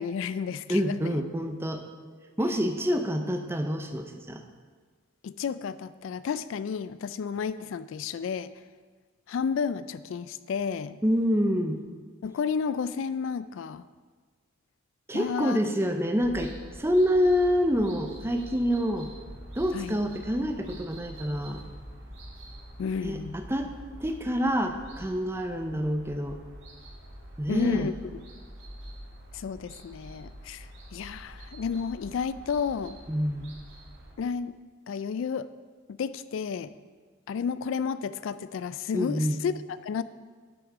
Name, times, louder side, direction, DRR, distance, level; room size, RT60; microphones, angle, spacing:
voice 1, 0.0-1.2 5.2-8.5 9.3-11.0 12.2-13.8 15.1-15.6 19.7-20.0 22.8-23.4 27.5-27.9 29.3-33.0 34.2-34.6 34.9-35.5 35.9-36.7 37.3-39.5 39.8-40.0, left 6 dB, 65° left, 15 dB, 0.3 m, -31 dB
voice 2, 0.7-1.8 2.4-4.4 11.0-11.8 15.1-19.1 19.6-21.7 23.0-23.7 24.0-26.4 27.4-27.9 33.1-33.5 38.9-39.4, equal, 10° right, 5 dB, 0.6 m, -27 dB
sound 1, 16.2-34.1, equal, 70° right, 3.1 m, -46 dB
9.9 x 6.2 x 4.9 m, 1.5 s
head